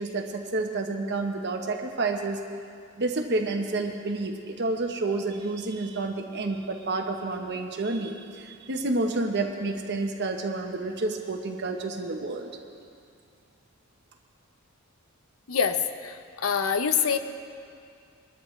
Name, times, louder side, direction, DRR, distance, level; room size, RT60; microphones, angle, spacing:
voice 1, 0.0-2.4 3.0-12.5, right 2 dB, 55° right, 3 dB, 0.9 m, -29 dB
voice 2, 15.5-17.2, left 6 dB, 75° left, 9 dB, 0.8 m, -25 dB
22.0 x 13.0 x 3.2 m, 2.3 s
head